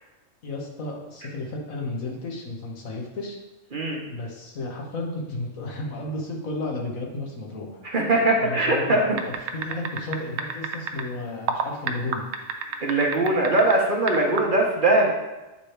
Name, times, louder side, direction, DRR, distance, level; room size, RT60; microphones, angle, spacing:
voice 1, 0.4-3.4 4.1-7.8 8.4-12.3, left 2 dB, 80° left, 0 dB, 1.5 m, -33 dB
voice 2, 7.8-9.0 12.8-15.1, right 2 dB, 45° right, 0 dB, 1.0 m, -21 dB
sound 1, 9.2-11.0 11.5-13.7 14.1-14.4, right 7 dB, 80° right, 1.0 m, -28 dB
8.3 x 3.3 x 4.5 m, 1.0 s
omnidirectional pair, 1.4 m